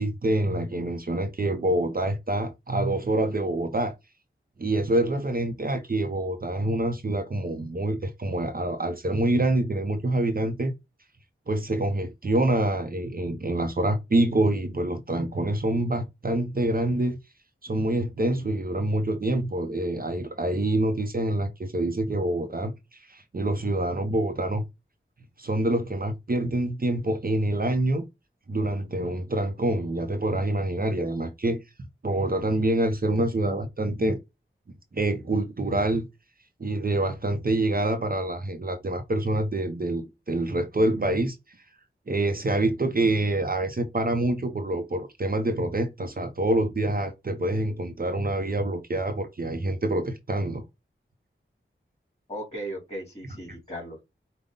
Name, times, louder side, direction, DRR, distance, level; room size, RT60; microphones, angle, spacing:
voice 1, 0.0-3.9 4.6-10.7 11.5-17.1 17.6-22.7 23.0-24.6 25.4-28.1 28.5-31.6 32.0-34.2 34.9-36.0 36.6-41.4 42.1-50.6, right 1 dB, 45° right, 0.7 m, -26 dB
voice 2, 52.3-54.0, right 1 dB, 30° left, 3.1 m, -37 dB
5.2 x 2.2 x 3.8 m
wide cardioid pair, 80°, 21 cm